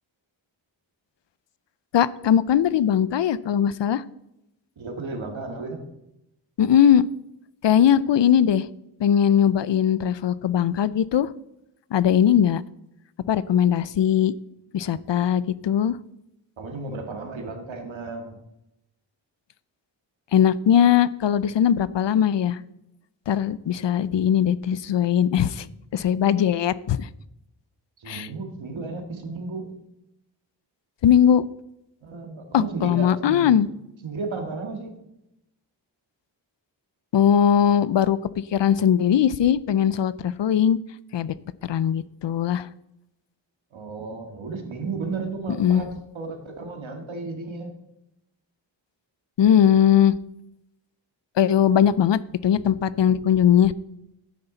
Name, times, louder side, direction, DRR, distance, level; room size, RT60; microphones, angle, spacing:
voice 1, 1.9-4.0 6.6-7.0 7.6-8.7 9.0-11.3 11.9-12.6 13.3-14.3 14.7-16.0 20.3-22.6 23.3-25.7 25.9-27.1 28.1-28.3 31.0-31.4 32.5-33.7 37.1-40.8 41.1-41.3 41.6-42.7 45.6-45.8 49.4-50.1 51.4-53.7, left 9 dB, 65° left, 18 dB, 0.5 m, -20 dB
voice 2, 4.8-5.9 16.6-18.4 28.0-29.7 32.0-33.6 34.0-34.9 43.7-47.7, right 3 dB, 85° right, 4 dB, 2.0 m, -33 dB
12.5 x 9.5 x 4.0 m, 0.86 s
wide cardioid pair, 95°, 46 cm